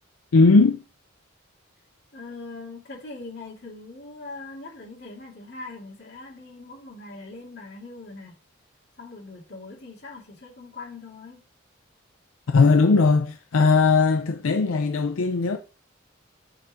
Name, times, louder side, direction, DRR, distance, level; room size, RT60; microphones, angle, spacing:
voice 1, 0.3-0.8 12.5-15.6, left 4 dB, 85° left, 0.5 m, -18 dB
voice 2, 2.1-8.4 9.0-11.4, left 3 dB, 55° left, 2.3 m, -41 dB
6.5 x 3.8 x 4.2 m
head